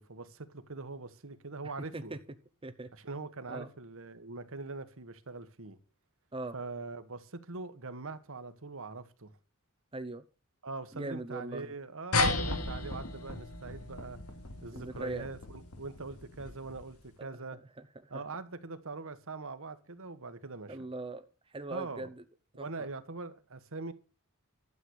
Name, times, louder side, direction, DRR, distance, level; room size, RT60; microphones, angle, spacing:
voice 1, 0.0-2.1 2.9-5.8 6.5-9.3 10.6-14.2 14.6-17.6 18.1-20.8 21.7-22.1 22.5-23.9, right 3 dB, 65° right, 1.5 m, -42 dB
voice 2, 9.9-10.2 10.9-11.7 14.7-15.3 17.2-18.2 20.7-22.2 22.6-22.9, right 2 dB, 25° right, 0.8 m, -41 dB
sound 1, 12.1-17.0, left 3 dB, 80° left, 2.5 m, -34 dB
12.5 x 8.0 x 6.5 m
head